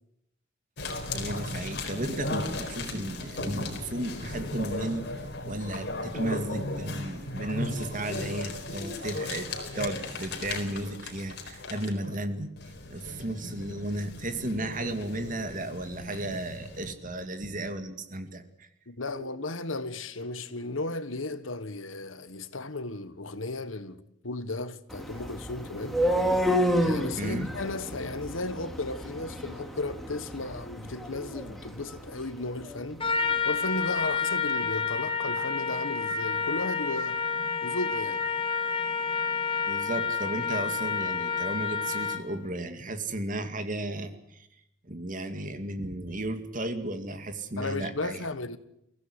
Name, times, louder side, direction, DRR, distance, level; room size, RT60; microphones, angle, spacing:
sound 1, 0.8-12.3 12.6-16.9, left 2 dB, 60° left, 4.2 m, -36 dB
voice 1, 1.1-12.5 12.9-18.7 19.1-19.3 27.2-27.5 39.6-44.5 44.8-48.3, right 1 dB, 40° right, 2.3 m, -34 dB
voice 2, 18.9-26.0 26.8-33.0 33.4-37.2 37.6-38.2 47.6-48.6, left 2 dB, 80° left, 1.5 m, -35 dB
sound 2, 24.9-32.9, equal, ahead, 2.6 m, -30 dB
Trumpet, 33.0-42.4, left 5 dB, 25° left, 1.6 m, -29 dB
23.5 x 16.0 x 9.8 m
head